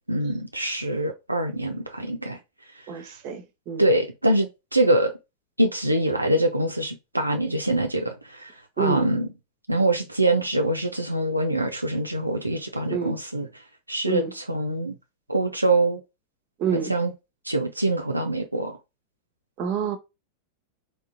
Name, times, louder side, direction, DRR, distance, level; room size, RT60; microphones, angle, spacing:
voice 1, 0.1-2.4 3.0-3.1 3.8-5.1 5.6-9.3 9.7-13.5 13.9-14.9 15.3-16.0 16.7-17.1 17.5-18.8, right 1 dB, 85° right, 0.4 m, -24 dB
voice 2, 2.9-3.9 8.8-9.1 12.9-13.2 14.0-14.3 16.6-16.9 19.6-20.0, right 7 dB, 40° right, 0.7 m, -28 dB
3.7 x 2.3 x 2.5 m
figure-of-eight pair, 90°, 0 cm